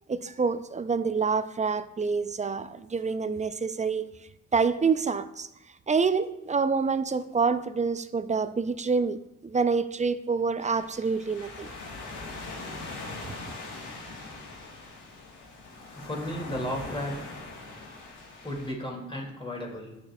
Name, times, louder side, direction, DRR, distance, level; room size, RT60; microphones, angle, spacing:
voice 1, 0.1-4.2 4.5-5.5 5.9-11.7, right 5 dB, 25° right, 0.5 m, -27 dB
sound 1, 10.6-18.7, left 3 dB, 75° left, 1.5 m, -41 dB
voice 2, 15.9-17.3 18.4-20.1, equal, 15° left, 2.3 m, -34 dB
10.5 x 6.4 x 2.3 m
supercardioid pair, 50°, 30 cm